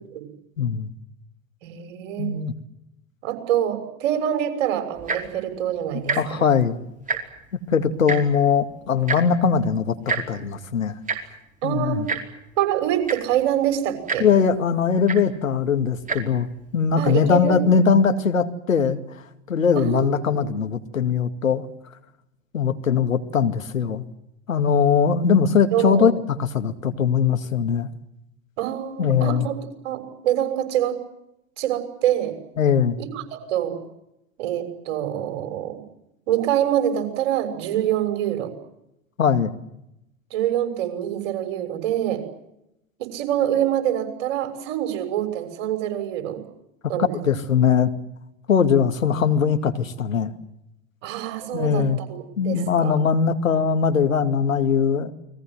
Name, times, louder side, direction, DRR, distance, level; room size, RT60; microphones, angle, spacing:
voice 1, 0.6-0.9 2.2-2.5 6.2-6.8 7.7-10.9 11.6-12.1 14.2-16.5 16.7-21.7 22.5-24.0 24.5-26.1 26.4-27.9 29.0-29.5 32.6-33.0 39.2-39.5 47.2-47.9 48.5-50.3 51.5-52.0 52.4-55.1, left 6 dB, 80° left, 8 dB, 2.3 m, -21 dB
voice 2, 1.6-2.3 3.2-6.4 11.6-12.0 12.6-14.3 17.0-17.6 19.7-20.5 25.7-26.1 28.6-31.0 31.6-32.4 33.0-33.8 34.4-35.8 36.3-38.5 40.3-42.2 43.0-46.4 46.9-47.1 51.0-52.9, right 11 dB, 55° right, 8 dB, 6.5 m, -25 dB
Tick-tock, 5.0-5.3 6.0-6.2 6.5-6.6 6.9-7.5 8.1-8.2 9.1-9.2 10.1-10.2 11.1-11.2 12.1-12.2 12.8-12.9 13.0-13.4 14.1-14.2 15.1-15.2 16.0-16.2 16.9-17.0, right 5 dB, 20° right, 4.9 m, -26 dB
29.5 x 22.0 x 7.7 m, 0.84 s
figure-of-eight pair, 85°, 39 cm